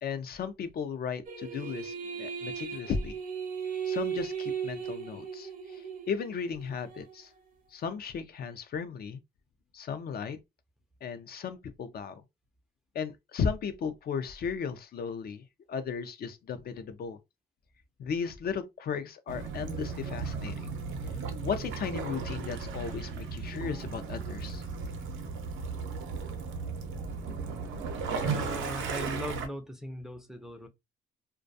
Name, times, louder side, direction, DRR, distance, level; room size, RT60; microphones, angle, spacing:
voice 1, 0.0-3.2 3.9-7.3 7.7-9.2 9.7-10.4 11.0-12.2 12.9-17.2 18.0-20.7 21.4-24.6, left 6 dB, 50° left, 0.5 m, -35 dB
sound 1, 1.3-7.1, right 7 dB, 45° right, 0.6 m, -37 dB
Waves surf / Splash splatter / Trickle dribble, 19.3-29.5, right 5 dB, 80° right, 0.6 m, -35 dB
voice 2, 28.2-30.7, equal, ahead, 0.4 m, -39 dB
2.3 x 2.2 x 2.6 m
cardioid pair, 90°, 20 cm